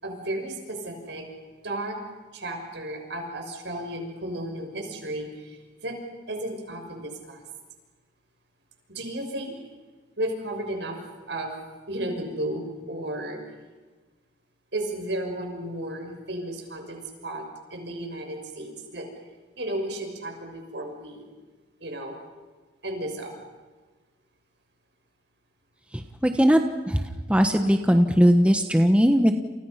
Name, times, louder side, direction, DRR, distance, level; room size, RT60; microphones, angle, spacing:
voice 1, 0.0-1.3 1.6-2.0 2.3-6.0 6.3-7.4 8.9-9.7 10.2-11.0 11.3-11.5 11.9-13.4 14.7-17.4 17.7-19.1 19.6-21.2 21.8-22.2 22.8-23.3, right 1 dB, 65° right, 3 dB, 6.4 m, -33 dB
voice 2, 25.9-26.6 26.9-27.0 27.3-29.3, equal, 5° right, 6 dB, 1.2 m, -19 dB
30.0 x 29.5 x 5.8 m, 1.4 s
head